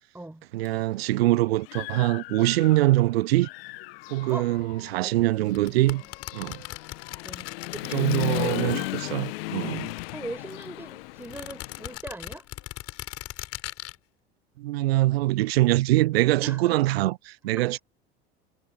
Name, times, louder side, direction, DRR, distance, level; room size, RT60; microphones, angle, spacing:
voice 1, 0.5-3.5 4.1-6.0 6.3-6.6 7.9-9.9 14.6-17.8, right 17 dB, 70° right, 0.5 m, -23 dB
Human voice / Motorcycle, 0.7-0.8 1.2-3.0 3.4-12.0, left 23 dB, 65° left, 1.4 m, -35 dB
voice 2, 5.0-6.1 7.2-8.5 10.1-12.4 16.4-16.8 17.6-17.8, right 2 dB, 5° right, 6.1 m, -41 dB
sound 1, 5.5-9.3 9.5-10.7 11.2-13.9, left 15 dB, 50° left, 6.0 m, -39 dB
figure-of-eight pair, 70°, 32 cm